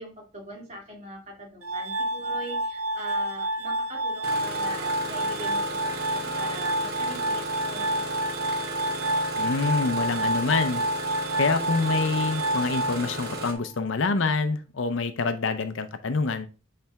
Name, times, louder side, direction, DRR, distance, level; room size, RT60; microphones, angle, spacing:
voice 1, 0.0-8.4, right 1 dB, 30° right, -2 dB, 2.2 m, -42 dB
Glass, 1.6-13.6, right 1 dB, 80° right, 0.8 m, -29 dB
Engine starting, 4.2-13.5, right 2 dB, 45° right, 1.1 m, -35 dB
voice 2, 9.3-10.8 11.4-16.5, left 4 dB, 65° left, 10 dB, 0.5 m, -26 dB
8.5 x 3.4 x 3.4 m, 0.33 s
head